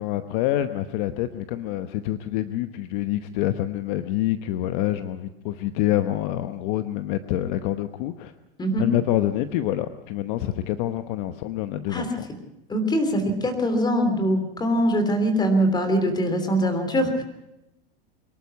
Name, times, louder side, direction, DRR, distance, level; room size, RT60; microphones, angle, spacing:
voice 1, 0.0-8.3 8.8-12.3, left 13 dB, 50° left, 10 dB, 1.0 m, -26 dB
voice 2, 12.7-17.2, equal, 15° left, 7 dB, 3.2 m, -22 dB
24.0 x 12.0 x 9.4 m, 0.91 s
supercardioid pair, 145°, 31 cm